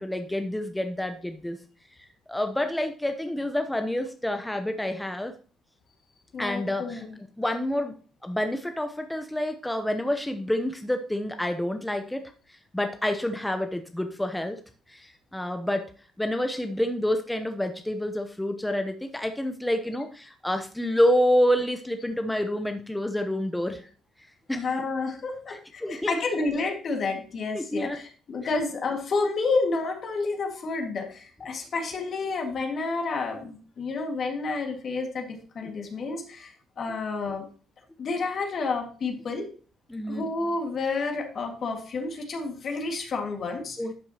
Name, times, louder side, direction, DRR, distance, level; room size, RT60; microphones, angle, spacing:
voice 1, 0.0-1.6 2.3-5.3 6.4-7.0 7.4-8.0 8.2-12.3 12.7-14.6 14.9-15.9 16.2-23.8 24.5-24.7 25.5-26.1 27.5-28.0 39.9-40.3 43.8-43.9, left 1 dB, 10° left, 6 dB, 0.9 m, -28 dB
voice 2, 6.3-7.1 24.5-37.5 38.0-39.5 40.1-43.8, left 3 dB, 55° left, 3 dB, 2.0 m, -30 dB
11.5 x 5.8 x 3.0 m, 0.40 s
hypercardioid pair, 55°, 0 cm